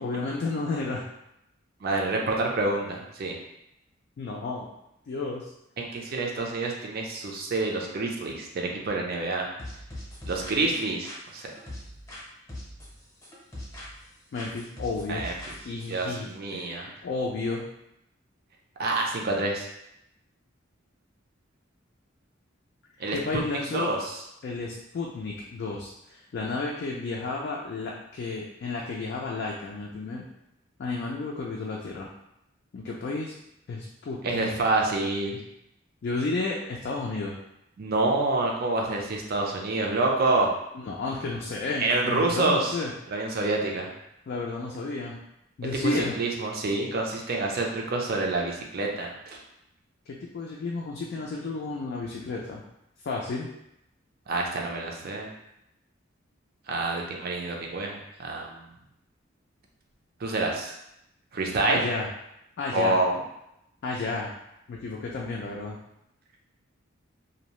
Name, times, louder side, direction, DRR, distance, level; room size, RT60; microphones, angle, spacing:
voice 1, 0.0-1.0 4.2-4.7 5.1-5.5 14.3-15.2 15.6-17.6 23.1-23.9 24.4-30.3 30.8-32.1 32.7-33.4 33.7-34.5 36.0-37.4 40.7-42.9 44.3-45.2 45.6-46.1 50.1-52.6 53.0-53.5 61.6-62.1 62.6-62.9 63.8-64.3 64.7-65.8, left 3 dB, 55° left, -3 dB, 0.3 m, -32 dB
voice 2, 1.8-3.4 5.8-9.5 10.3-11.5 15.1-15.3 15.9-16.9 18.8-19.7 23.0-23.4 23.7-24.1 34.2-35.4 37.8-40.5 41.8-42.8 43.1-43.9 45.7-49.4 54.3-55.3 56.7-58.6 60.2-60.8 61.3-61.8 62.7-63.2, right 2 dB, 50° right, 0 dB, 0.4 m, -27 dB
sound 1, 9.6-12.2 12.5-14.1 14.4-16.0, left 1 dB, 15° left, 0.7 m, -41 dB
2.6 x 2.0 x 2.9 m, 0.83 s
head